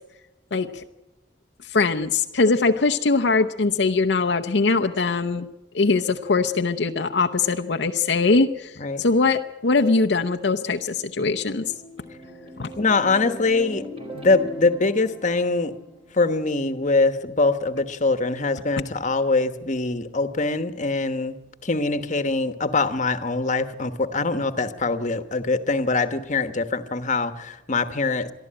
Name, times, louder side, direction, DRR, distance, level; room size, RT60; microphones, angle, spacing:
voice 1, 0.5-0.8 1.6-5.5 5.7-11.6 12.6-12.7, left 3 dB, 70° left, 5 dB, 0.8 m, -21 dB
sound 1, 11.0-16.4, equal, 30° right, 4.2 m, -39 dB
voice 2, 12.8-13.9 14.1-15.7 16.1-28.3, left 3 dB, 45° left, 10 dB, 1.2 m, -23 dB
23.0 x 14.0 x 8.8 m, 1.0 s
head